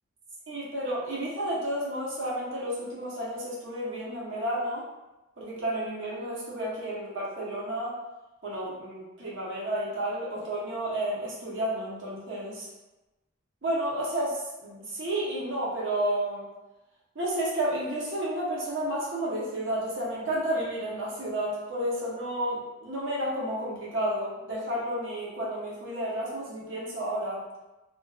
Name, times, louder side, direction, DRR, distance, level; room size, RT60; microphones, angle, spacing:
voice 1, 0.5-4.9 5.4-8.0 8.4-12.7 13.6-16.4 17.1-27.4, right 1 dB, 65° right, -6 dB, 0.7 m, -31 dB
2.5 x 2.3 x 2.3 m, 1.0 s
head